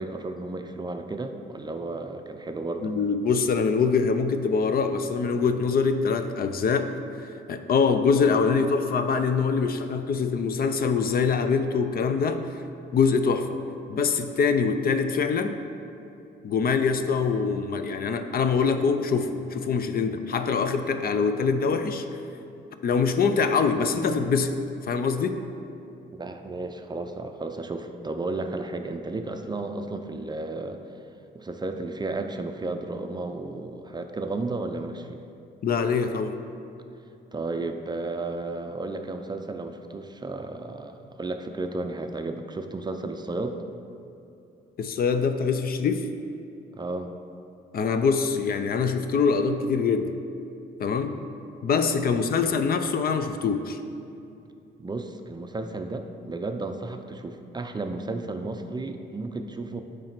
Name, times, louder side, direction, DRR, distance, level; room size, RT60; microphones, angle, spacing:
voice 1, 0.0-2.9 26.1-30.8 31.3-35.2 37.3-43.6 46.8-47.1 51.0-51.2 52.0-52.2 54.8-59.8, right 2 dB, 20° right, 6 dB, 0.5 m, -33 dB
voice 2, 2.8-6.9 7.5-12.4 12.9-13.6 13.9-15.6 16.4-22.0 22.8-24.5 24.9-25.4 35.6-36.4 44.8-46.0 47.7-50.1 50.8-51.1 51.6-53.8, left 5 dB, 50° left, 8 dB, 0.5 m, -24 dB
8.8 x 3.3 x 5.9 m, 2.7 s
cardioid pair, 90°, 20 cm